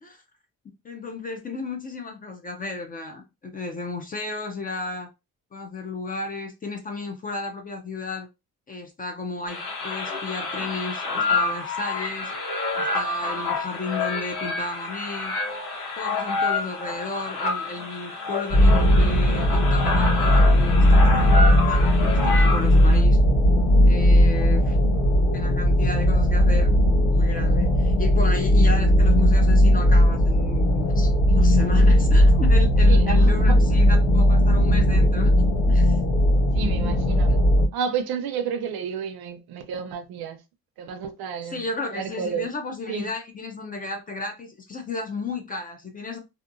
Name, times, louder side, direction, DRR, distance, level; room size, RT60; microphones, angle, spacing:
voice 1, 0.8-5.1 5.5-8.3 8.7-12.3 12.7-15.3 16.0-23.2 23.8-24.8 25.3-26.7 27.1-35.3 35.7-36.0 37.3-37.4 41.4-46.2, left 3 dB, 25° left, 0.3 m, -33 dB
sound 1, 9.5-23.0, left 3 dB, 90° left, 1.1 m, -28 dB
sound 2, 18.5-37.7, equal, 50° left, 1.3 m, -18 dB
voice 2, 24.4-24.8 32.9-33.5 36.5-37.4 37.7-40.4 40.8-41.7 41.9-42.5 42.9-43.1, right 6 dB, 80° right, 0.6 m, -31 dB
2.8 x 2.2 x 2.4 m
cardioid pair, 175°, 37 cm